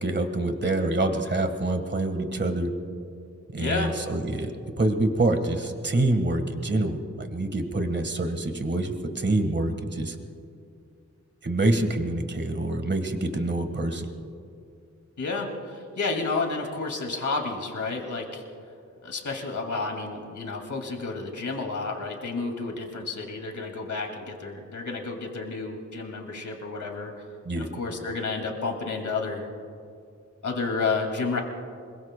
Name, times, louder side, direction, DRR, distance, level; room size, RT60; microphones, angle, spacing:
voice 1, 0.0-2.7 3.5-4.5 4.8-10.1 11.4-14.0 27.4-27.7, right 2 dB, 40° right, 6 dB, 1.5 m, -26 dB
voice 2, 3.6-3.9 15.2-18.4 19.0-27.1 27.6-29.4 30.4-31.4, left 3 dB, 85° left, 2 dB, 2.3 m, -31 dB
25.5 x 22.5 x 2.2 m, 2.4 s
wide cardioid pair, 115°, 29 cm